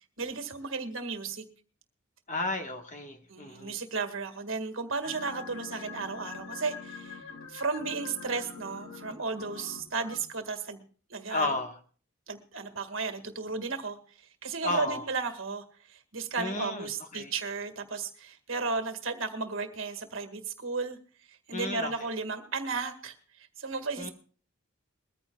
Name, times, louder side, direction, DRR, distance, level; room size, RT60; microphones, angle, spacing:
voice 1, 0.2-1.4 3.3-7.2 7.5-10.8 11.1-11.5 12.3-14.0 14.4-15.6 15.9-21.0 21.5-23.1 23.6-24.1, right 4 dB, 65° right, 6 dB, 1.8 m, -34 dB
voice 2, 2.3-3.8 11.3-11.8 14.6-15.1 16.4-17.3 21.5-22.1 24.0-24.1, left 2 dB, 35° left, 5 dB, 1.4 m, -33 dB
sound 1, 5.0-10.2, left 5 dB, 85° left, 2.5 m, -44 dB
22.0 x 14.5 x 2.3 m, 0.42 s
head